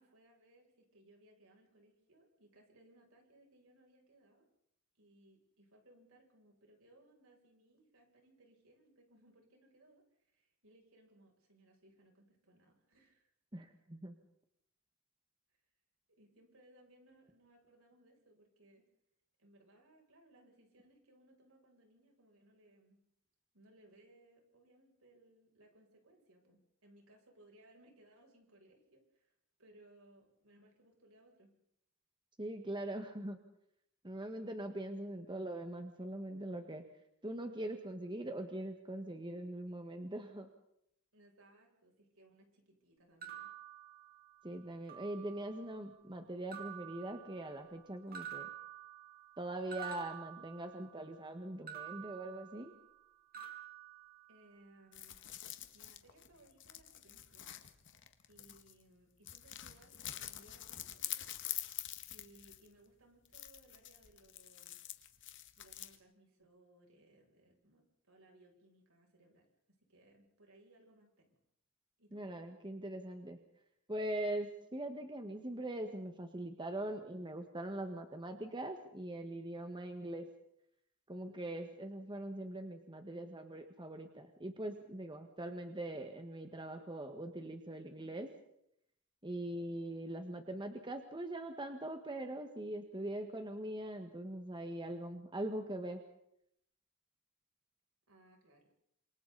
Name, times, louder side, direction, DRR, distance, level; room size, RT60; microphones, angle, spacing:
voice 1, 0.0-4.5 5.0-13.3 16.2-18.8 19.4-23.0 23.5-29.3 29.6-31.5 41.1-43.5 54.3-55.2 55.7-57.5 58.3-61.3 62.1-64.8 65.6-69.5 69.9-71.4 72.0-72.2 98.1-98.6, right 1 dB, 75° right, 1 dB, 7.4 m, -65 dB
voice 2, 13.5-14.2 32.4-33.4 34.0-36.8 37.2-40.5 44.4-48.5 49.4-52.7 72.1-73.4 73.9-80.3 81.1-88.3 89.2-96.0, right 1 dB, 20° right, 5 dB, 1.7 m, -42 dB
sound 1, 43.2-44.5 44.9-45.7 46.5-47.8 48.1-51.1 51.7-53.0 53.3-54.7, right 9 dB, 45° right, 5.2 m, -49 dB
sound 2, 54.9-58.8 59.3-62.8 63.3-66.0, left 13 dB, 60° left, 1.7 m, -46 dB
28.5 x 27.5 x 4.2 m, 0.75 s
head